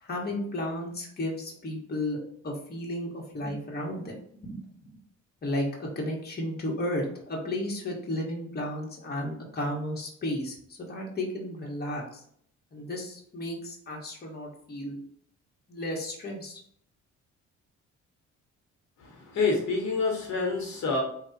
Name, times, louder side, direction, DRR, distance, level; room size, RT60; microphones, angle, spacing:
voice 1, 0.0-2.2 2.4-4.1 4.4-4.9 5.4-12.2 12.7-15.0 15.7-16.6, left 1 dB, 30° left, -2 dB, 1.2 m, -33 dB
voice 2, 19.0-21.0, left 4 dB, 65° left, 0 dB, 1.1 m, -27 dB
3.4 x 2.4 x 4.0 m, 0.63 s
cardioid pair, 90°, 30 cm